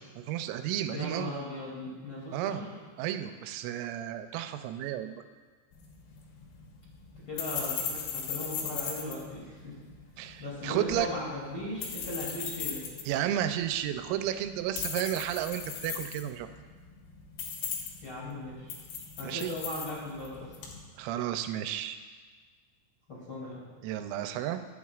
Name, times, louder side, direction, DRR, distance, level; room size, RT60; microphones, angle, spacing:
voice 1, 0.2-1.3 2.3-2.6 3.0-5.2 10.2-11.1 13.1-16.5 19.2-19.6 21.0-22.0 23.8-24.6, right 11 dB, 90° right, 9 dB, 3.3 m, -32 dB
voice 2, 0.9-2.7 7.3-9.7 10.4-12.8 18.0-18.7 19.2-20.5 23.1-23.6, left 1 dB, 35° left, -8 dB, 2.5 m, -38 dB
sound 1, 5.7-20.8, left 7 dB, 75° left, 3.8 m, -39 dB
22.0 x 7.7 x 2.4 m, 1.5 s
omnidirectional pair, 5.9 m